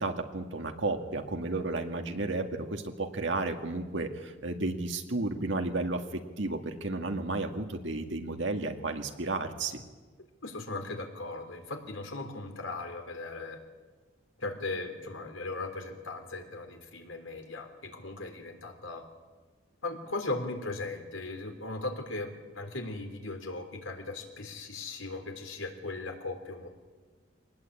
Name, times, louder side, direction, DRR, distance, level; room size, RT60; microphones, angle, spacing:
voice 1, 0.0-6.0 6.4-9.8, right 2 dB, 70° right, 5 dB, 2.0 m, -32 dB
voice 2, 10.4-13.6 14.4-19.0 19.8-26.7, left 2 dB, 80° left, 4 dB, 3.6 m, -38 dB
23.5 x 19.5 x 8.7 m, 1.4 s
head